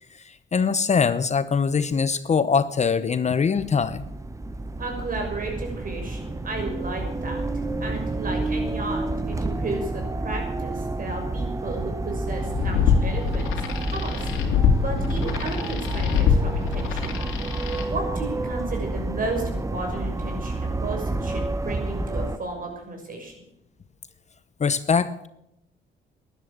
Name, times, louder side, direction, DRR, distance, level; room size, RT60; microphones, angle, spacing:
voice 1, 0.3-4.0 24.6-25.3, left 5 dB, 35° left, 14 dB, 0.8 m, -22 dB
sound 1, 3.6-22.4, right 2 dB, 15° right, 0.8 m, -29 dB
voice 2, 4.8-7.5 7.8-14.2 14.8-17.2 17.8-23.3, right 2 dB, 45° right, 2 dB, 6.4 m, -33 dB
sound 2, 12.3-17.8, left 7 dB, 90° left, 2.6 m, -24 dB
13.0 x 11.0 x 8.6 m, 0.83 s
cardioid pair, 90°, 20 cm